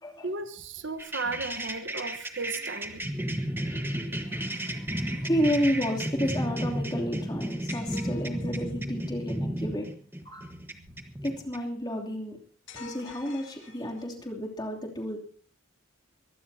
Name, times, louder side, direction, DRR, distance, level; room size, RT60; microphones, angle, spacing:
voice 1, 0.2-3.1, right 3 dB, 60° right, 1.2 m, -35 dB
sound 1, 1.0-11.6, right 1 dB, 10° right, 1.4 m, -33 dB
voice 2, 3.4-9.9 10.2-10.5 11.2-12.4 12.7-15.2, equal, 20° left, 2.9 m, -32 dB
sound 2, 7.7-8.9 12.7-14.3, left 3 dB, 70° left, 2.2 m, -46 dB
23.0 x 15.5 x 2.8 m
head